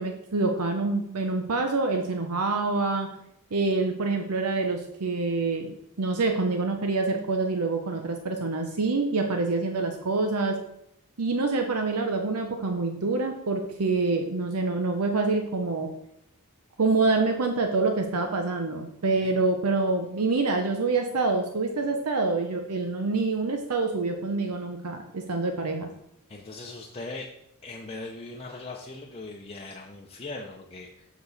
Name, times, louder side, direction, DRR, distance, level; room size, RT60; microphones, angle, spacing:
voice 1, 0.0-3.1 3.5-10.6 11.2-15.9 16.8-25.9, right 3 dB, 90° right, 4 dB, 0.8 m, -26 dB
voice 2, 26.3-27.3 27.6-31.1, left 2 dB, 25° left, -1 dB, 0.7 m, -40 dB
6.8 x 6.2 x 4.1 m, 0.77 s
head